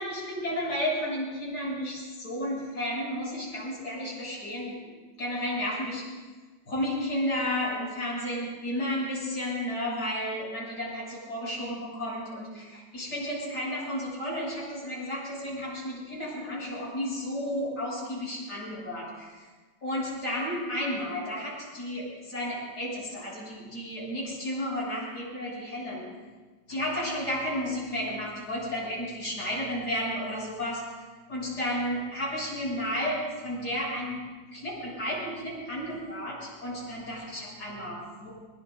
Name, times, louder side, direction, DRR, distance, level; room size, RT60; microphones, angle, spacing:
voice 1, 0.0-4.9 5.2-6.0 6.6-19.5 19.8-26.1 26.7-30.9 31.3-34.2 34.5-38.3, equal, 55° left, -5 dB, 7.7 m, -32 dB
23.0 x 22.0 x 2.6 m, 1.3 s
omnidirectional pair, 2.2 m